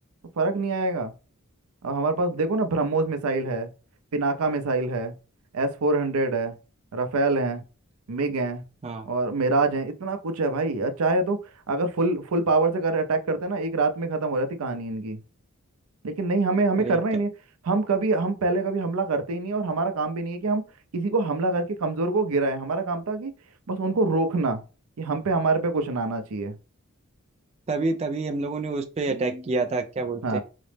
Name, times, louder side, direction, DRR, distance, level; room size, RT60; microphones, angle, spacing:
voice 1, 0.4-1.1 1.8-3.7 4.1-5.1 5.5-6.6 6.9-7.6 8.1-8.6 9.1-11.4 11.7-15.2 16.0-17.3 17.6-20.6 20.9-23.3 23.7-24.6 25.0-26.6 30.2-30.4, right 3 dB, 90° right, 0.5 m, -25 dB
voice 2, 27.7-30.4, right 3 dB, 30° right, 0.3 m, -28 dB
4.0 x 2.0 x 3.2 m
head